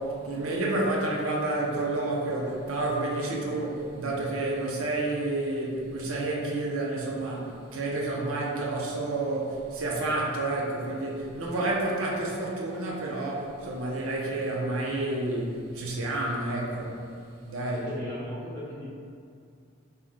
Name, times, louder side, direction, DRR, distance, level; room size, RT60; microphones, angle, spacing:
voice 1, 0.0-17.1 17.5-17.9, right 2 dB, 85° right, -3 dB, 0.5 m, -30 dB
voice 2, 17.8-18.9, left 1 dB, 10° left, -11 dB, 0.7 m, -37 dB
2.9 x 2.1 x 3.5 m, 2.4 s
head